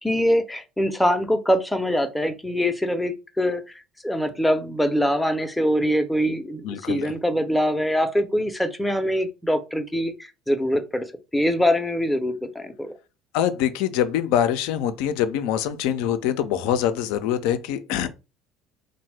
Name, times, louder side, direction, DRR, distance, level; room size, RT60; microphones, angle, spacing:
voice 1, 0.0-3.6 4.0-10.1 10.5-11.1 11.3-12.9, equal, 5° left, 0.5 m, -23 dB
voice 2, 6.6-7.1 13.3-18.1, left 10 dB, 70° left, 0.3 m, -24 dB
2.7 x 2.0 x 3.1 m
hypercardioid pair, 65°, 0 cm